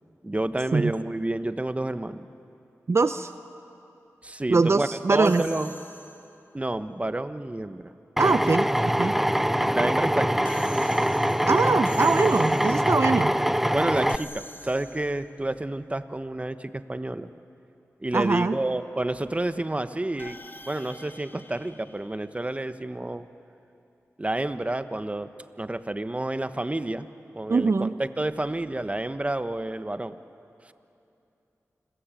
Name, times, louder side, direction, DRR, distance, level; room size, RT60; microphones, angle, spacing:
voice 1, 0.2-2.2 4.2-5.7 6.5-7.9 9.7-10.5 13.7-17.3 18.0-20.4 20.7-23.3 24.2-25.3 25.6-27.1 27.3-30.2 30.7-30.8, right 1 dB, 25° right, 11 dB, 1.2 m, -29 dB
voice 2, 2.9-3.3 4.5-5.4 8.2-9.2 11.5-13.3 18.1-18.5 27.5-27.9, right 4 dB, 55° right, 11 dB, 0.7 m, -22 dB
sound 1, 5.2-6.5 10.4-13.0 14.1-15.4 20.2-22.7, left 1 dB, 40° left, 2.1 m, -46 dB
Drill, 8.2-14.2, equal, 5° right, 0.5 m, -23 dB
30.0 x 21.5 x 9.1 m, 2.8 s
cardioid pair, 50°, 6 cm